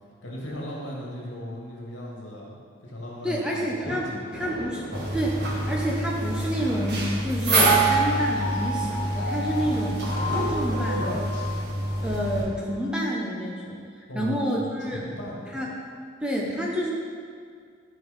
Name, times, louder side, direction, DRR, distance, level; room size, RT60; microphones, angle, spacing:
voice 1, 0.2-2.6 2.8-4.5 14.1-15.6, left 1 dB, 65° left, -4 dB, 2.4 m, -37 dB
voice 2, 3.2-4.1 4.3-4.9 5.1-11.3 12.0-15.0 15.5-15.7 16.2-16.9, equal, 5° right, -3 dB, 0.9 m, -29 dB
Thunder, 4.3-6.8, left 1 dB, 50° left, 1.5 m, -41 dB
sound 1, 4.9-12.4, right 1 dB, 55° right, 1.7 m, -27 dB
Piano, 7.6-11.7 12.2-12.3, right 4 dB, 90° right, 2.3 m, -29 dB
13.0 x 4.6 x 5.3 m, 2.1 s
head